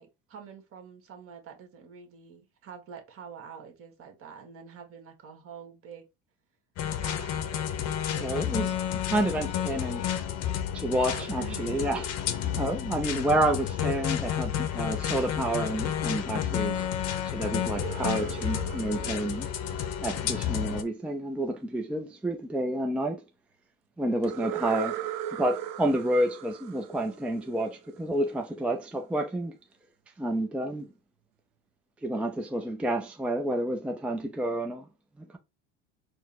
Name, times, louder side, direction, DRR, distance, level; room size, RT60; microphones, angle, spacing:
voice 1, 0.0-6.1 7.0-8.8 11.1-11.9 13.3-13.4, right 7 dB, 45° right, 1.5 m, -46 dB
sound 1, 6.8-20.8, left 10 dB, 55° left, 0.8 m, -31 dB
voice 2, 8.2-8.7 9.1-10.0 10.7-12.1 12.6-16.9 17.2-19.5 20.0-23.2 24.0-25.0 25.4-29.5 30.2-30.9 32.0-34.9, right 1 dB, 5° right, 0.4 m, -29 dB
sound 2, 17.6-20.6 24.2-28.0, right 12 dB, 75° right, 0.6 m, -38 dB
4.4 x 2.1 x 4.1 m
supercardioid pair, 110°, 31 cm